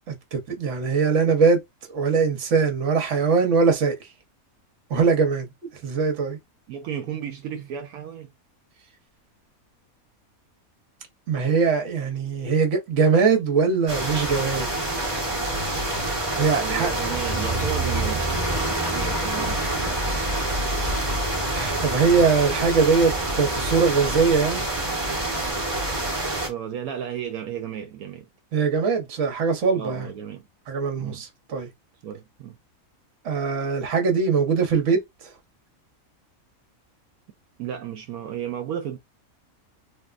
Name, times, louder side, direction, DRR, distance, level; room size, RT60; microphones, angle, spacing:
voice 1, 0.1-1.6 1.9-4.0 4.9-6.4 11.3-14.8 15.5-16.9 21.5-24.7 28.5-30.1 30.7-31.7 33.2-35.0, right 5 dB, 60° right, 1.1 m, -22 dB
voice 2, 6.7-8.3 16.6-18.3 18.9-19.9 26.4-28.3 29.8-30.5 31.0-31.2 32.0-32.6 37.6-39.0, right 9 dB, 80° right, 1.0 m, -33 dB
sound 1, 13.9-26.5, right 1 dB, 25° right, 1.1 m, -26 dB
3.5 x 2.5 x 2.4 m
omnidirectional pair, 1.5 m